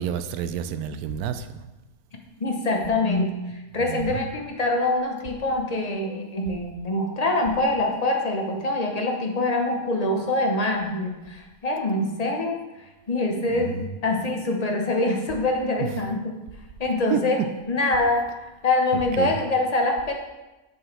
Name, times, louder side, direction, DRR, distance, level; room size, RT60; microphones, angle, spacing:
voice 1, 0.0-1.6 3.8-4.2 13.5-13.9 17.1-17.2 19.2-19.4, right 9 dB, 80° right, 10 dB, 1.0 m, -29 dB
voice 2, 2.4-12.6 13.1-16.2 16.8-17.4 17.7-18.3 18.6-20.1, left 2 dB, 30° left, 2 dB, 0.9 m, -24 dB
7.0 x 6.9 x 3.2 m, 1.1 s
omnidirectional pair, 1.6 m